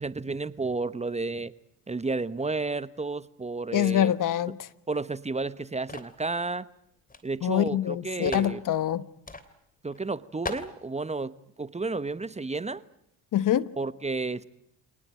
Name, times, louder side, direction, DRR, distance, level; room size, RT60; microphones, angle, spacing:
voice 1, 0.0-1.5 1.9-4.1 4.9-6.6 7.2-8.6 9.8-11.3 11.6-12.8 13.8-14.4, right 3 dB, 15° right, 1.1 m, -31 dB
voice 2, 3.7-4.7 7.4-9.0 13.3-13.7, left 11 dB, 50° left, 1.3 m, -25 dB
sound 1, 5.9-6.2 7.1-7.2 7.5-7.6 8.2-8.6 9.3-9.5 9.9-10.0 10.5-10.7, left 3 dB, 20° left, 3.2 m, -36 dB
26.5 x 19.5 x 9.0 m
hypercardioid pair, 65°, 40 cm